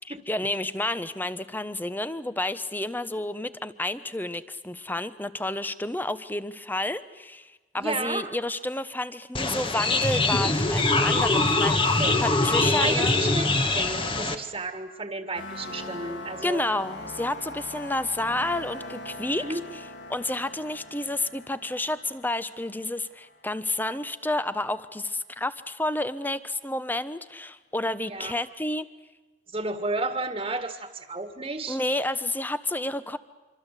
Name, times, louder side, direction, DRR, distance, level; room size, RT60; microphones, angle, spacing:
voice 1, 0.0-13.1 16.4-19.4 20.1-28.9 31.7-33.2, left 1 dB, 10° left, 13 dB, 1.0 m, -30 dB
voice 2, 7.7-8.3 11.9-12.2 12.6-16.6 19.4-19.6 28.1-28.3 29.5-31.8, right 3 dB, 30° right, 7 dB, 1.8 m, -32 dB
sound 1, 9.3-14.3, left 2 dB, 30° left, 1.7 m, -23 dB
sound 2, 15.3-24.0, left 1 dB, 90° left, 2.5 m, -41 dB
26.0 x 25.5 x 8.4 m, 1.2 s
head